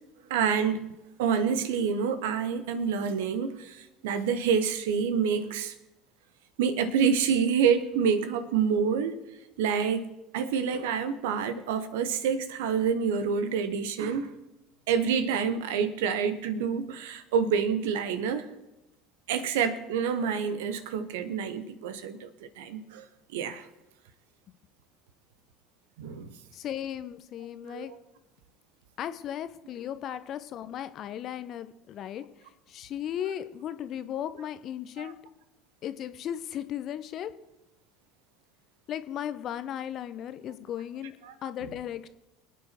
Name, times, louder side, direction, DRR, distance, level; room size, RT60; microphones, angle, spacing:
voice 1, 0.3-0.9 1.2-5.7 6.6-9.2 9.6-10.1 10.3-14.3 14.9-18.5 19.3-22.3 22.6-23.0 23.3-23.7 26.0-26.3 27.7-28.0 35.0-35.1 41.2-41.3, right 6 dB, 65° right, 12 dB, 1.3 m, -27 dB
voice 2, 26.5-27.9 29.0-32.2 32.7-35.2 35.8-37.3 38.9-41.2 41.4-42.1, left 10 dB, 45° left, 12 dB, 1.0 m, -36 dB
25.0 x 9.4 x 4.5 m, 0.94 s
figure-of-eight pair, 65°, 0 cm